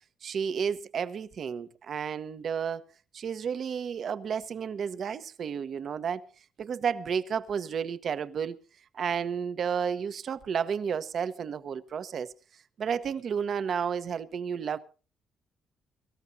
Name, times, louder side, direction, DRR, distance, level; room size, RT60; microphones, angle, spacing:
voice 1, 0.2-2.8 3.1-6.2 6.6-8.6 8.9-12.3 12.8-14.8, right 7 dB, 60° right, 1.0 m, -32 dB
24.0 x 14.0 x 2.7 m
cardioid pair, 90°, 0 cm